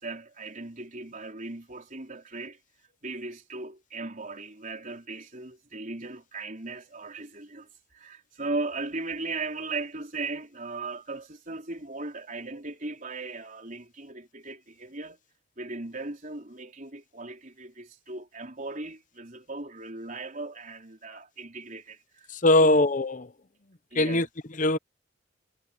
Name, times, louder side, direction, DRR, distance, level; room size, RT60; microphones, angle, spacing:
voice 1, 0.0-2.6 3.0-15.2 15.6-22.3 22.6-22.9 23.9-24.3, right 3 dB, 35° right, 4.0 m, -37 dB
voice 2, 22.4-23.3 24.0-24.3 24.6-24.8, left 2 dB, 35° left, 0.8 m, -20 dB
head